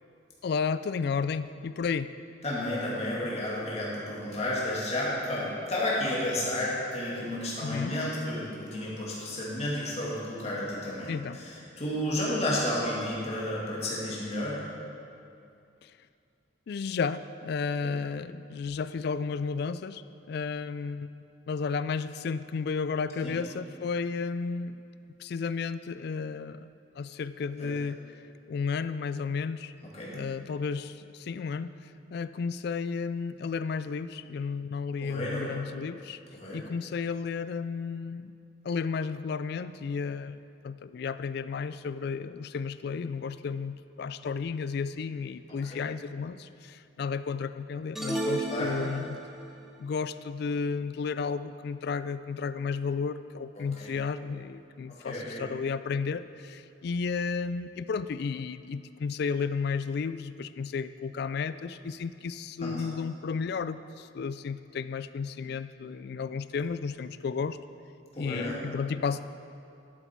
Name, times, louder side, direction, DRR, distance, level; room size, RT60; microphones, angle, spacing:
voice 1, 0.4-2.1 7.6-8.0 11.1-11.4 15.8-15.9 16.7-20.0 20.3-21.1 21.5-24.8 25.2-26.7 27.0-28.0 28.5-29.7 30.1-31.7 32.1-36.2 36.5-38.3 38.6-49.2 49.8-67.6 68.2-69.2, left 5 dB, 55° left, 14 dB, 0.3 m, -33 dB
voice 2, 2.4-14.6 17.8-18.0 23.2-23.4 27.6-27.7 29.9-30.2 35.0-35.5 36.3-36.6 45.7-45.8 48.5-48.7 53.6-53.9 54.9-55.4 62.6-62.8 68.1-68.5, left 1 dB, 35° left, -6 dB, 2.3 m, -32 dB
sound 1, 47.9-49.5, right 2 dB, ahead, 0.6 m, -33 dB
11.5 x 8.0 x 4.5 m, 2.5 s
head